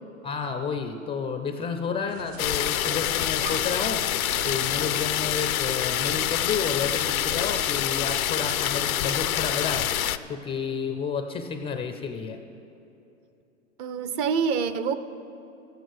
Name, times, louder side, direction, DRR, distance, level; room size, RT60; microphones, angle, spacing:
voice 1, 0.2-4.1 4.4-9.9 10.3-12.4, left 5 dB, 15° left, 7 dB, 0.4 m, -31 dB
sound 1, 2.1-7.9, right 5 dB, 70° right, 1.8 m, -45 dB
sound 2, 2.4-10.2, left 11 dB, 85° left, 0.6 m, -26 dB
voice 2, 13.8-14.9, right 6 dB, 40° right, 11 dB, 0.8 m, -26 dB
13.5 x 8.5 x 6.2 m, 2.9 s
hypercardioid pair, 105°, 41 cm